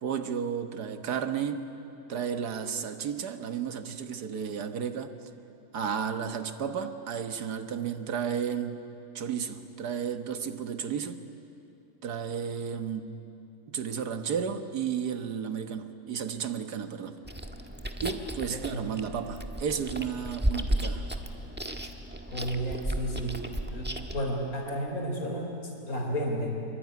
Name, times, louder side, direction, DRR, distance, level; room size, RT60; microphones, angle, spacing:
voice 1, 0.0-1.7 2.1-5.1 5.7-8.8 9.2-11.2 12.0-13.1 13.7-17.2 18.0-21.1, right 7 dB, 80° right, 8 dB, 1.8 m, -33 dB
Chewing mastication, 17.3-24.2, right 1 dB, 5° right, 1.2 m, -34 dB
voice 2, 18.5-18.9 22.3-23.4 23.7-26.7, equal, 60° left, 1 dB, 4.5 m, -32 dB
26.0 x 23.5 x 9.5 m, 2.8 s
omnidirectional pair, 1.7 m